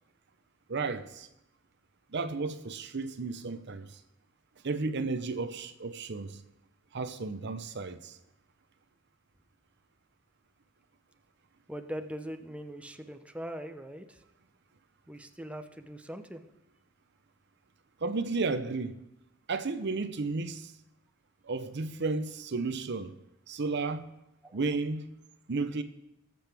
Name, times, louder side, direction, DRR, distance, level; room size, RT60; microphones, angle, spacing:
voice 1, 0.7-1.3 2.1-4.0 4.6-6.4 6.9-8.2 18.0-19.0 19.5-20.7 21.4-23.1 23.5-24.1 24.5-25.1 25.5-25.8, right 3 dB, 60° right, 0.7 m, -33 dB
voice 2, 11.7-14.2 15.1-16.4 24.4-24.6, equal, 5° right, 0.6 m, -41 dB
19.5 x 7.8 x 3.5 m
head